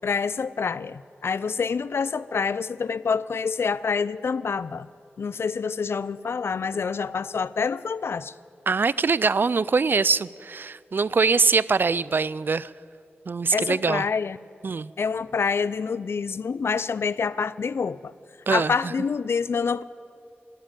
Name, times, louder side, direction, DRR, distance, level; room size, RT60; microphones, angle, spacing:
voice 1, 0.0-4.9 5.2-8.3 13.5-14.4 15.0-18.1 18.5-19.8, left 5 dB, 70° left, 18 dB, 0.4 m, -27 dB
voice 2, 8.7-12.7 13.3-14.0 14.6-14.9 18.5-18.9, right 4 dB, 55° right, 20 dB, 0.3 m, -23 dB
13.0 x 12.5 x 9.0 m, 2.4 s
wide cardioid pair, 65°, 4 cm